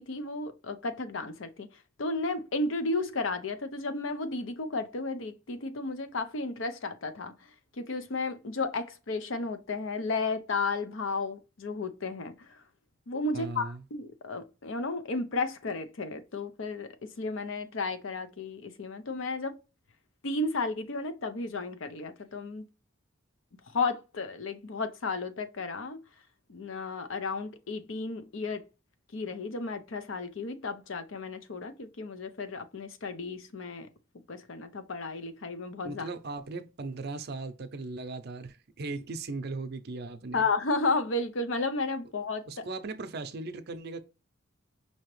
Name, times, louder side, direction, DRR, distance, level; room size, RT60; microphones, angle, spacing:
voice 1, 0.0-1.7 2.0-7.3 7.8-12.6 13.1-19.6 20.2-22.6 23.7-26.0 26.5-28.6 29.1-33.9 34.3-36.1 40.3-42.7, left 3 dB, 70° left, 0.7 m, -33 dB
voice 2, 13.3-13.8 35.8-40.4 42.5-44.0, right 3 dB, 55° right, 0.6 m, -38 dB
5.5 x 2.9 x 3.1 m
head